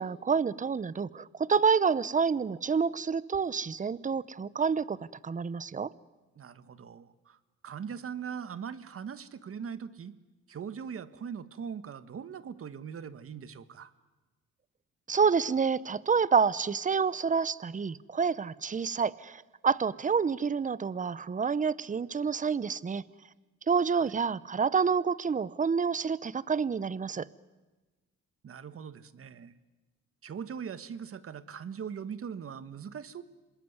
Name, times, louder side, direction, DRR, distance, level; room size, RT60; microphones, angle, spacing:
voice 1, 0.0-5.9 15.1-23.1 23.7-27.3, right 6 dB, 25° right, 20 dB, 0.8 m, -28 dB
voice 2, 6.4-7.4 7.6-10.2 10.5-13.9 23.9-24.1 28.4-29.5 30.2-33.2, right 7 dB, 50° right, 13 dB, 1.5 m, -41 dB
27.0 x 20.5 x 9.6 m, 1.2 s
cardioid pair, 90°, 30 cm